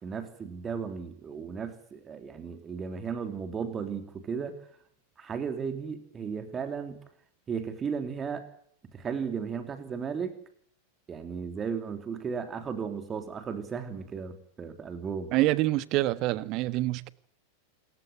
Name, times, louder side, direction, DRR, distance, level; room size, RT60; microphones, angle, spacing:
voice 1, 0.0-4.6 5.2-7.0 7.5-8.5 8.9-10.4 11.1-15.3, right 6 dB, 20° right, 3.1 m, -35 dB
voice 2, 15.3-17.1, right 17 dB, 40° right, 1.3 m, -26 dB
28.0 x 15.0 x 9.0 m
figure-of-eight pair, 90°, 0 cm